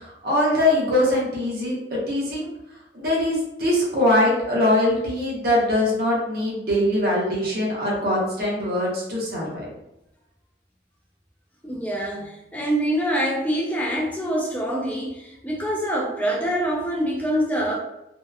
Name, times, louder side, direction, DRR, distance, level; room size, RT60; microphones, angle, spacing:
voice 1, 0.0-2.5 2.9-9.7, left 1 dB, 55° right, -4 dB, 0.8 m, -22 dB
voice 2, 11.6-17.8, equal, 10° left, -4 dB, 0.3 m, -25 dB
2.7 x 2.1 x 2.3 m, 0.88 s
head